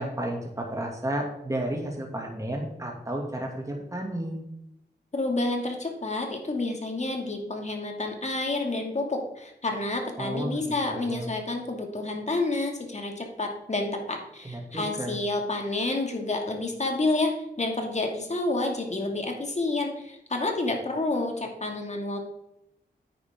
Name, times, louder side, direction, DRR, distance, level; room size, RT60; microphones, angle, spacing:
voice 1, 0.0-4.4 10.2-11.3 14.4-15.2, right 1 dB, 20° right, 0 dB, 2.5 m, -32 dB
voice 2, 5.1-22.2, left 2 dB, 40° left, 2 dB, 2.5 m, -29 dB
9.4 x 9.3 x 3.8 m, 0.83 s
cardioid pair, 55°, 18 cm